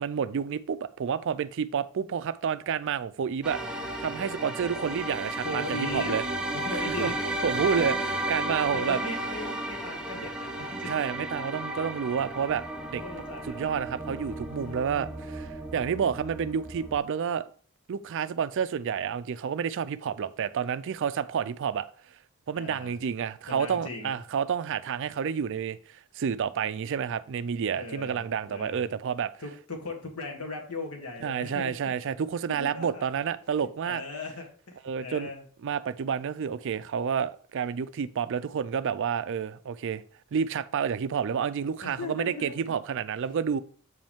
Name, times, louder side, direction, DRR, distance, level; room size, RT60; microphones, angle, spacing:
voice 1, 0.0-6.2 7.0-7.1 7.4-7.9 8.3-9.0 10.9-12.6 12.9-13.0 13.4-17.4 17.9-21.9 22.5-29.3 31.2-34.0 34.8-35.3 35.6-40.0 40.3-43.6, right 7 dB, 55° right, 0.4 m, -29 dB
sound 1, 3.4-17.0, right 1 dB, 5° right, 0.8 m, -34 dB
voice 2, 5.4-6.2 6.5-7.3 7.6-7.9 8.7-10.9 12.9-13.6 22.5-22.9 23.5-24.2 27.7-28.9 29.4-31.7 32.6-33.1 33.8-35.4 41.8-42.7, left 2 dB, 80° left, 1.5 m, -38 dB
8.0 x 5.2 x 3.5 m
head